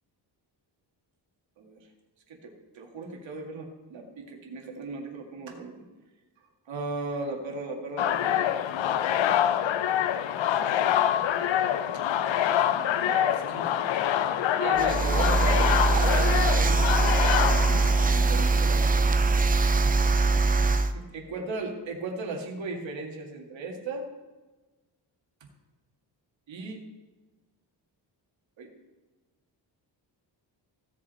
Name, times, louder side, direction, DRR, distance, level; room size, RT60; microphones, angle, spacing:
voice 1, 1.6-1.9 2.3-5.8 6.7-8.5 13.0-13.7 14.6-18.9 20.9-24.1 26.5-26.9 28.6-28.7, right 3 dB, 80° right, 1 dB, 1.9 m, -36 dB
sound 1, 8.0-18.4, left 10 dB, 80° left, 0.7 m, -26 dB
sound 2, 14.8-20.9, right 3 dB, 20° right, 0.4 m, -22 dB
16.0 x 5.4 x 4.2 m, 1.2 s
wide cardioid pair, 155°, 45 cm